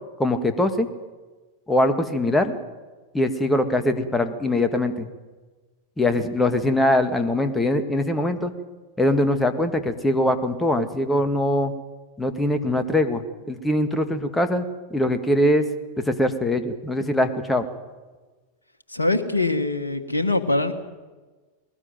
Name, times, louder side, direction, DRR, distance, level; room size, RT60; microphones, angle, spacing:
voice 1, 0.2-0.9 1.7-2.6 3.1-5.1 6.0-8.5 9.0-11.7 12.2-15.6 16.0-17.7, left 1 dB, 10° left, 8 dB, 1.9 m, -22 dB
voice 2, 18.9-20.7, left 2 dB, 80° left, 7 dB, 1.5 m, -23 dB
20.5 x 19.0 x 9.2 m, 1.3 s
figure-of-eight pair, 90°, 0 cm